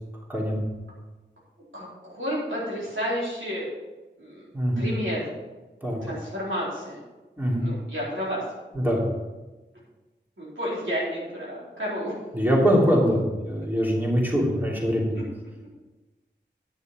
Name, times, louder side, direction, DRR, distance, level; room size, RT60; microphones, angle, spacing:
voice 1, 0.3-0.6 4.5-4.9 5.8-6.0 7.4-7.7 8.7-9.0 12.3-15.1, equal, 10° right, -4 dB, 3.1 m, -23 dB
voice 2, 1.7-3.6 4.2-4.4 4.8-5.3 6.0-7.0 7.6-8.4 10.4-12.1, equal, 85° right, -7 dB, 4.2 m, -31 dB
10.5 x 6.8 x 6.1 m, 1.2 s
wide cardioid pair, 45°, 19 cm